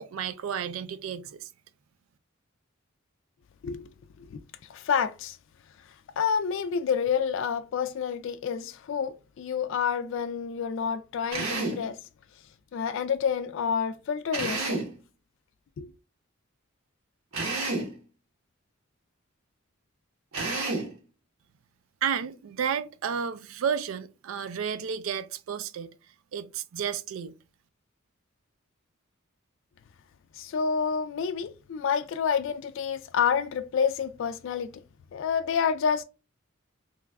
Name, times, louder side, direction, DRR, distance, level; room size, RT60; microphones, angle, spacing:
voice 1, 0.0-1.5 22.0-25.9 26.3-27.3, right 7 dB, 75° right, 0.4 m, -32 dB
voice 2, 4.7-5.4 6.2-12.0 12.7-14.8 15.8-15.9 30.3-34.7 35.1-36.0, left 6 dB, 65° left, 0.3 m, -28 dB
Drill, 11.3-11.9 14.3-15.0 17.3-17.9 20.3-20.9, right 3 dB, 90° right, 1.1 m, -30 dB
3.0 x 2.3 x 3.3 m
head